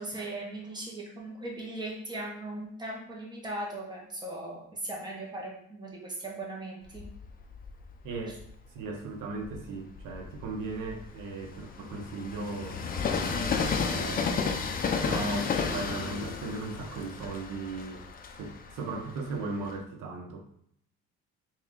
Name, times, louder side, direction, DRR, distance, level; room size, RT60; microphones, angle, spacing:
voice 1, 0.0-7.0, right 1 dB, 15° right, -2 dB, 1.0 m, -38 dB
Train, 6.9-8.6 9.2-19.8, left 5 dB, 30° left, 0.4 m, -33 dB
voice 2, 8.0-8.4 8.7-12.8 13.3-14.5 15.0-18.0 18.4-20.4, right 3 dB, 75° right, 1 dB, 0.9 m, -37 dB
3.5 x 2.9 x 3.7 m, 0.70 s
cardioid pair, 130°, 31 cm